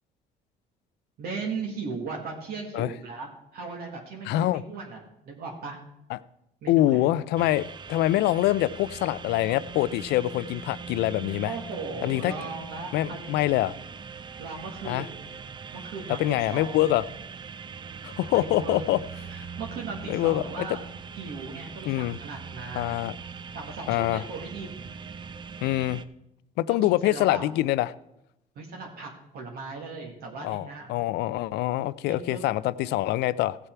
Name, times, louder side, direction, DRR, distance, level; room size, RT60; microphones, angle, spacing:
voice 1, 1.2-5.8 6.6-7.1 11.5-13.6 14.4-15.2 15.7-16.8 18.3-18.8 19.3-20.8 21.2-23.0 23.5-24.9 26.8-27.5 28.6-30.9 32.1-32.5, right 4 dB, 65° right, -1 dB, 2.0 m, -38 dB
voice 2, 4.3-4.6 6.1-6.2 6.7-7.6 7.9-11.5 12.0-12.3 12.9-13.7 14.8-15.1 16.2-17.0 18.0-19.0 20.1-20.7 21.9-22.2 22.7-23.1 23.9-24.2 25.6-26.0 26.6-27.9 30.4-33.6, left 15 dB, 85° left, 18 dB, 0.5 m, -25 dB
sound 1, 7.4-26.0, right 6 dB, 25° right, 0.5 m, -41 dB
16.0 x 6.8 x 4.6 m, 0.83 s
cardioid pair, 110°, 17 cm